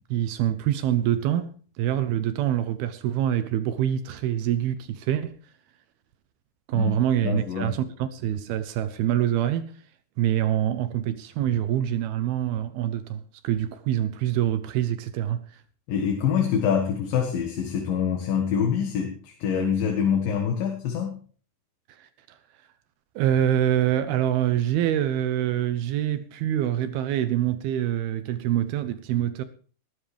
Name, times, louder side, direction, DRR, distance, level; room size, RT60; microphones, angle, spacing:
voice 1, 0.1-5.4 6.7-9.7 10.2-15.6 22.0-22.4 23.2-29.4, right 11 dB, 75° right, 2.6 m, -25 dB
voice 2, 7.2-7.7 15.9-21.2, left 7 dB, 65° left, 3.1 m, -25 dB
20.0 x 13.0 x 3.4 m
omnidirectional pair, 4.6 m